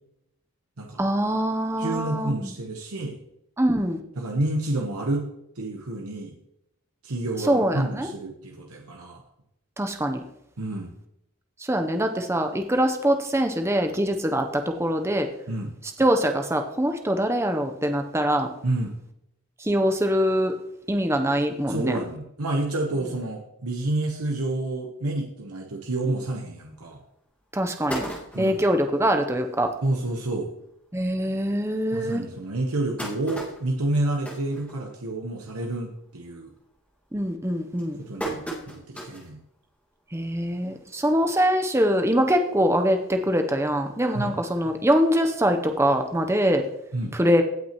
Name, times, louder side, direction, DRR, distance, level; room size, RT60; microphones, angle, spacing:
voice 1, 1.0-2.5 3.6-4.0 7.5-8.1 9.8-10.2 11.7-15.3 16.0-18.5 19.6-20.5 20.9-22.0 27.5-28.0 28.4-29.7 30.9-32.2 37.1-38.0 40.1-46.6 47.1-47.4, equal, 10° right, 5 dB, 0.7 m, -23 dB
voice 2, 1.8-3.2 4.2-5.3 5.6-6.4 7.0-9.2 10.6-10.9 15.5-15.7 18.6-18.9 21.7-27.0 28.3-28.6 29.8-30.5 31.9-36.5 38.0-39.4 44.1-44.4 46.9-47.2, right 2 dB, 85° right, 1 dB, 1.1 m, -29 dB
sound 1, 26.8-26.9 27.3-27.4 27.6-28.7 29.3-29.4 29.7-29.8 30.1-30.3 31.0-31.1 31.6-31.7 32.4-35.3 35.6-36.0 36.3-36.7 37.3-39.4 39.8-39.9 41.1-41.2, right 1 dB, 5° left, 1.9 m, -36 dB
16.5 x 5.8 x 3.0 m, 0.80 s
head